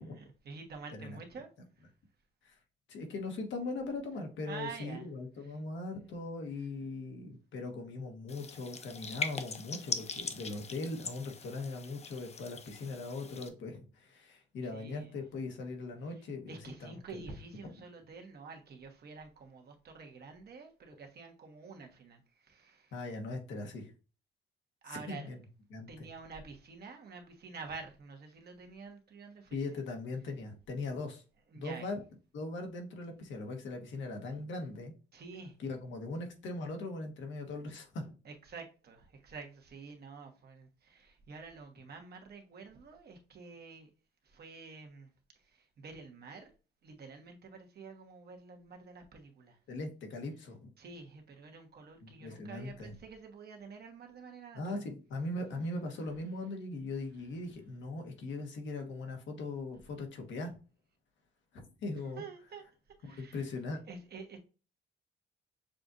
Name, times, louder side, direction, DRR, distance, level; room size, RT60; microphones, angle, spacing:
voice 1, 0.2-1.5 1.8-1.9 4.5-5.1 5.4-5.6 6.0-6.1 14.7-15.2 16.1-23.0 24.8-25.3 25.9-29.6 31.5-31.9 35.1-35.6 38.2-43.9 44.2-45.1 45.3-46.5 46.8-49.6 50.8-54.9 62.2-62.6 63.0-63.4 63.9-64.4, right 4 dB, 55° right, 1.2 m, -48 dB
voice 2, 2.9-17.2 17.6-17.7 22.9-23.9 24.9-25.4 25.7-26.1 29.5-31.2 31.5-32.0 32.3-34.9 35.6-38.1 49.7-50.7 52.0-52.9 54.5-60.6 61.5-62.2 63.0-63.8, left 2 dB, 70° left, 1.2 m, -40 dB
sound 1, 8.3-13.5, left 5 dB, 35° left, 0.6 m, -41 dB
6.6 x 2.5 x 2.6 m
cardioid pair, 90°, 20 cm